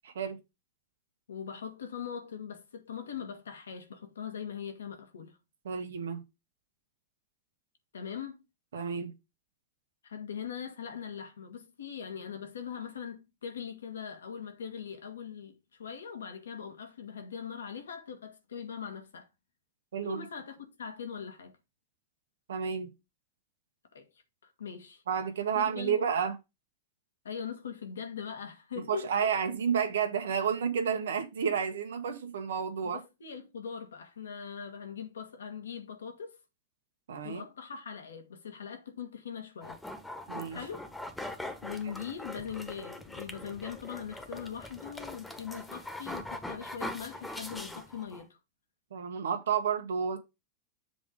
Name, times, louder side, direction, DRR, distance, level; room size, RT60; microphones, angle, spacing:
voice 1, 0.0-0.4 5.6-6.2 8.7-9.1 19.9-20.2 22.5-22.9 25.1-26.3 28.8-33.0 37.1-37.4 40.3-40.6 48.9-50.2, right 7 dB, 75° right, 1.3 m, -31 dB
voice 2, 1.3-5.4 7.9-8.4 10.0-19.3 20.0-21.5 23.9-24.1 24.4-25.0 25.5-26.1 27.2-29.3 32.8-36.4 37.2-39.8 40.5-40.9 41.6-48.4, left 7 dB, 80° left, 1.8 m, -41 dB
sound 1, 39.6-48.2, left 1 dB, 5° left, 1.3 m, -42 dB
7.7 x 3.8 x 5.1 m
hypercardioid pair, 100°, 0 cm